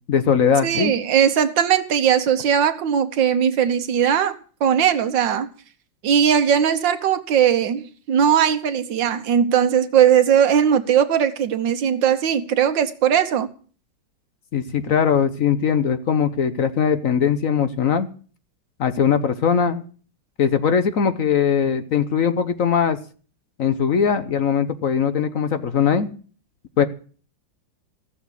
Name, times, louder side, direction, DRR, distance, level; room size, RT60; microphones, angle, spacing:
voice 1, 0.1-0.9 14.5-18.1 18.8-19.8 20.4-23.0 23.6-26.1 26.8-26.9, left 7 dB, 55° left, 1.1 m, -20 dB
voice 2, 0.6-5.5 6.0-13.5, right 8 dB, 85° right, 1.8 m, -19 dB
15.0 x 7.2 x 8.3 m
omnidirectional pair, 2.0 m